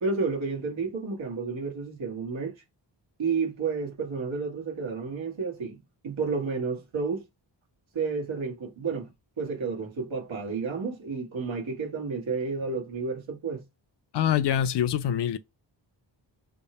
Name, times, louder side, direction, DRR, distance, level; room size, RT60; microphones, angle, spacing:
voice 1, 0.0-2.5 3.2-7.2 7.9-9.1 9.4-13.6, right 4 dB, 90° right, 1.2 m, -31 dB
voice 2, 14.1-15.4, left 10 dB, 65° left, 0.5 m, -25 dB
3.6 x 2.0 x 4.0 m
wide cardioid pair, 70°, 45 cm